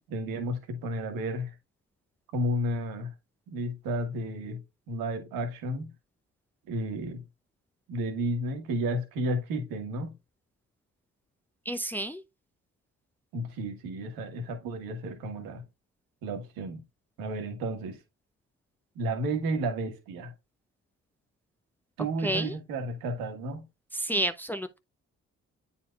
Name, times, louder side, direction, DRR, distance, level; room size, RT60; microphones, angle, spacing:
voice 1, 0.1-1.5 2.3-3.1 3.5-4.6 4.9-5.9 6.7-7.2 7.9-10.1 13.3-15.6 16.2-16.8 17.2-18.0 18.9-20.3 22.0-23.6, right 1 dB, 65° right, 1.5 m, -32 dB
voice 2, 11.7-12.2 22.2-22.6 23.9-24.8, right 1 dB, 5° left, 0.6 m, -30 dB
9.7 x 4.2 x 2.4 m
figure-of-eight pair, 40°, 37 cm